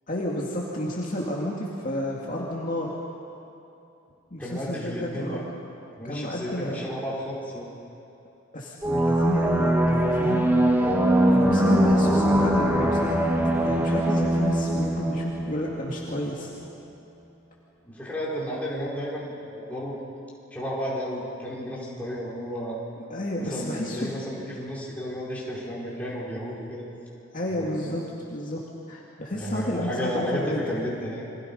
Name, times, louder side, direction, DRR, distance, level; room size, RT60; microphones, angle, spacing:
voice 1, 0.1-2.9 4.3-5.4 6.0-6.8 8.5-10.5 11.3-13.2 13.6-16.5 23.1-24.2 27.3-28.0 28.3-28.6 28.9-30.6, left 1 dB, 40° left, -3 dB, 2.3 m, -31 dB
voice 2, 4.4-5.4 6.0-7.6 17.8-20.0 20.5-22.8 23.5-26.9 27.5-27.9 29.3-31.2, equal, 5° left, -6 dB, 4.9 m, -32 dB
sound 1, 8.8-16.2, right 1 dB, 10° right, 1.7 m, -22 dB
29.0 x 23.5 x 5.5 m, 2.8 s
head